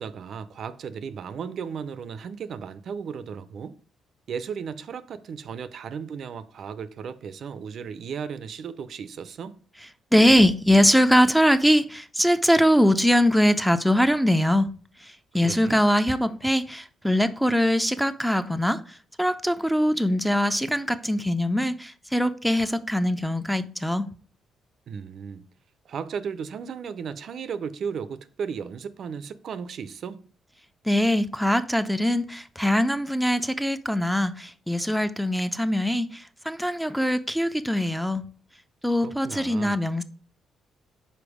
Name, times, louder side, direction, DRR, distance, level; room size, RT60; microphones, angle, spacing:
voice 1, 0.0-3.8 4.3-9.6 15.4-15.8 24.9-25.4 25.9-30.2 39.0-39.8, right 6 dB, 60° right, 0.4 m, -35 dB
voice 2, 10.1-14.7 15.0-18.8 19.2-24.1 30.9-38.2 38.8-40.0, equal, ahead, 0.4 m, -22 dB
5.1 x 4.5 x 4.8 m
cardioid pair, 90°, 0 cm